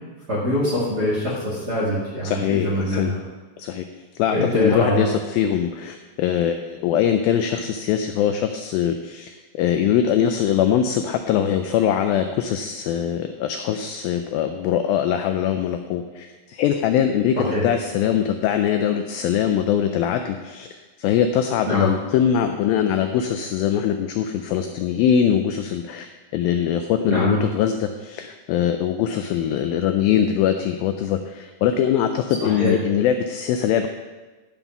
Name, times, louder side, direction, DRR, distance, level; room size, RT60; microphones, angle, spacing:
voice 1, 0.3-3.2 4.3-5.0 17.3-17.6 21.6-21.9 27.1-27.4 32.4-32.7, left 1 dB, 40° right, -6 dB, 1.5 m, -23 dB
voice 2, 2.2-3.1 3.6-3.9 4.2-26.1 26.3-33.9, left 9 dB, 85° left, 7 dB, 2.1 m, -22 dB
12.0 x 5.4 x 5.9 m, 1.3 s
omnidirectional pair, 4.7 m